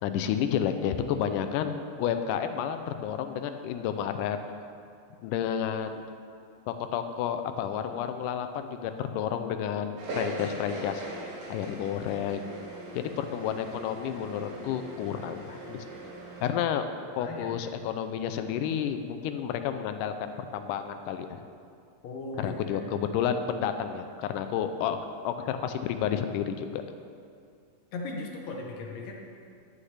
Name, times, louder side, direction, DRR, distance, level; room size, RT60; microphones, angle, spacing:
voice 1, 0.0-4.4 5.2-6.0 6.7-11.1 11.5-12.5 12.9-15.9 16.4-16.8 17.2-21.4 22.4-26.8, left 8 dB, 85° left, 8 dB, 2.1 m, -31 dB
sound 1, 10.0-16.5, right 1 dB, 80° right, 3.0 m, -40 dB
voice 2, 17.2-17.6 22.0-22.8 27.9-29.1, left 3 dB, 65° left, 0 dB, 1.8 m, -37 dB
11.0 x 8.5 x 3.3 m, 2.3 s
omnidirectional pair, 3.6 m